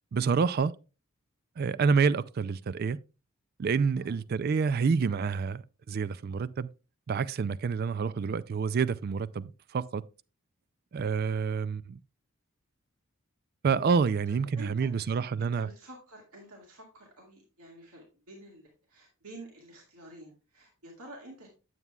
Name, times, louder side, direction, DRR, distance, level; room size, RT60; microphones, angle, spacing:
voice 1, 0.1-0.7 1.6-3.0 3.6-6.7 7.1-10.0 10.9-12.0 13.6-15.7, right 5 dB, 45° right, 0.3 m, -28 dB
voice 2, 14.5-21.5, right 1 dB, 90° right, 2.1 m, -49 dB
9.1 x 8.1 x 2.3 m
head